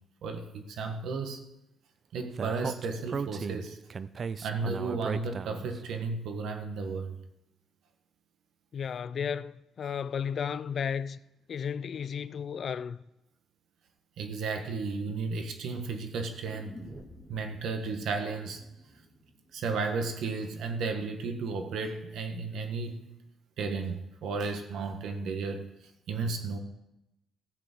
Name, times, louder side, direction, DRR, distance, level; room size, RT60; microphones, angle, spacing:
voice 1, 0.2-1.4 2.1-3.8 4.4-7.2 14.2-16.7 17.3-18.6 19.5-23.0 23.6-25.6 26.1-26.6, right 4 dB, 75° right, 1.4 m, -33 dB
Speech, 2.4-5.8, right 6 dB, 45° right, 0.5 m, -35 dB
voice 2, 8.7-11.2 11.5-13.0, left 7 dB, 55° left, 0.4 m, -33 dB
sound 1, 16.4-20.5 20.8-20.9, equal, ahead, 2.2 m, -51 dB
15.0 x 4.9 x 7.9 m
cardioid pair, 90°, 0 cm